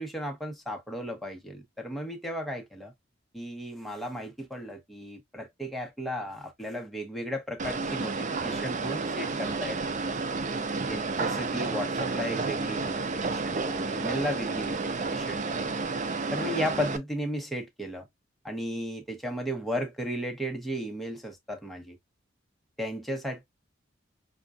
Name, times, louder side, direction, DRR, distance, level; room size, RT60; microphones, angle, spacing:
voice 1, 0.0-2.9 3.3-9.8 10.8-12.9 13.3-15.8 16.3-18.1 18.4-22.0 22.8-23.4, equal, ahead, 1.0 m, -35 dB
sound 1, 7.6-17.0, right 4 dB, 40° right, 0.5 m, -31 dB
5.8 x 2.4 x 2.4 m
head